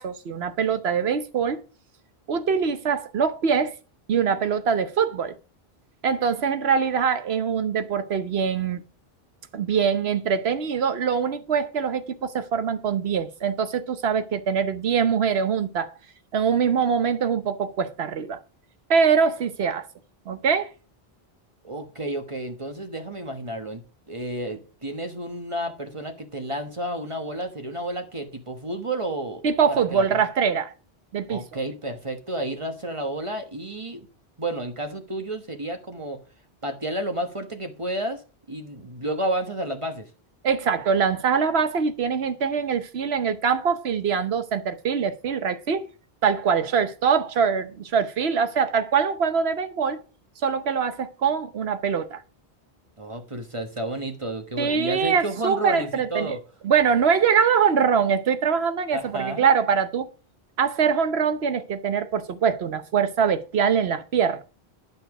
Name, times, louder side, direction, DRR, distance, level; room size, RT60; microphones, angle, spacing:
voice 1, 0.0-1.6 2.3-3.7 4.1-5.4 6.0-8.8 9.5-15.9 16.3-18.4 18.9-19.9 20.3-20.7 29.4-30.7 31.1-31.4 40.4-45.8 46.2-50.0 50.4-52.2 54.6-56.4 56.6-60.1 60.6-64.4, right 6 dB, 75° right, 1.2 m, -23 dB
voice 2, 21.6-23.8 24.1-29.4 29.7-30.2 31.3-34.1 34.4-36.2 36.6-38.2 38.5-40.1 53.0-56.4 58.9-59.5, right 1 dB, 30° right, 1.3 m, -31 dB
11.5 x 5.6 x 4.9 m
omnidirectional pair, 1.1 m